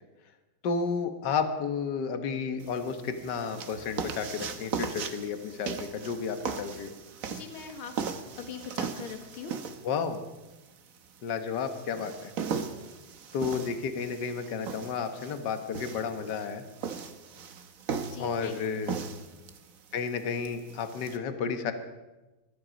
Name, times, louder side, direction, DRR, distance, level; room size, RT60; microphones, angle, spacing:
voice 1, 0.6-6.9 9.8-10.2 11.2-12.3 13.3-16.6 18.2-19.0 19.9-21.7, left 5 dB, 60° left, 8 dB, 1.7 m, -32 dB
sound 1, 2.6-21.2, right 6 dB, 50° right, 1.1 m, -38 dB
voice 2, 7.3-8.0 8.4-9.5 18.0-19.0, left 6 dB, 80° left, 5 dB, 2.3 m, -42 dB
20.0 x 13.0 x 5.1 m, 1.1 s
omnidirectional pair, 2.3 m